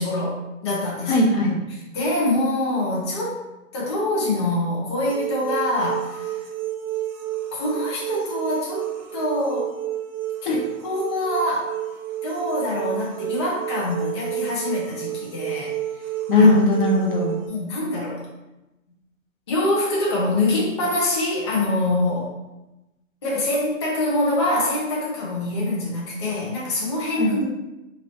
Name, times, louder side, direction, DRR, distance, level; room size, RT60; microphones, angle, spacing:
voice 1, 0.0-1.1 1.9-3.4 3.7-6.4 7.5-8.8 9.1-9.7 10.4-11.8 12.2-15.7 16.4-16.5 17.4-18.2 19.5-22.3 23.2-27.4, left 1 dB, 20° left, -5 dB, 0.5 m, -25 dB
voice 2, 1.1-1.6 10.4-10.6 16.3-17.4 27.2-27.4, left 2 dB, 40° left, -3 dB, 0.9 m, -18 dB
sound 1, 5.0-17.5, right 13 dB, 60° right, 0.8 m, -30 dB
3.0 x 2.6 x 4.2 m, 0.99 s
hypercardioid pair, 165°, 40 cm